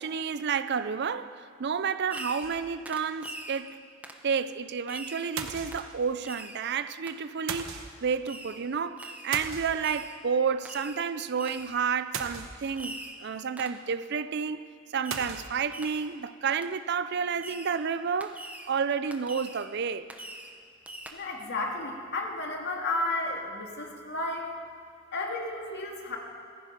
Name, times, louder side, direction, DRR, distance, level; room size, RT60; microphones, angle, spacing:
voice 1, 0.0-3.8 4.2-14.6 14.9-18.4 18.7-20.1, right 6 dB, 55° right, 0.5 m, -30 dB
Fireworks, 2.1-2.6 2.9-3.6 4.0-4.3 4.9-5.3 5.7-5.9 6.2-6.6 7.1-7.2 8.3-8.6 9.0-9.3 9.8-10.2 10.7-11.0 11.4-11.8 12.2-12.3 12.8-13.2 13.6-13.8 15.0-15.4 15.7-16.1 16.6-16.7 17.4-17.8 18.2-18.7 19.1-19.7 20.1-20.6 20.9-21.1, right 1 dB, 5° right, 0.9 m, -43 dB
sound 1, 2.4-3.0 3.4-3.5 3.7-3.8 5.4-6.2 7.5-8.1 9.3-10.2 12.1-12.9 15.1-15.6, right 5 dB, 70° right, 1.1 m, -38 dB
voice 2, 21.1-24.5 25.1-26.2, left 2 dB, 55° left, 2.1 m, -32 dB
15.0 x 15.0 x 5.3 m
head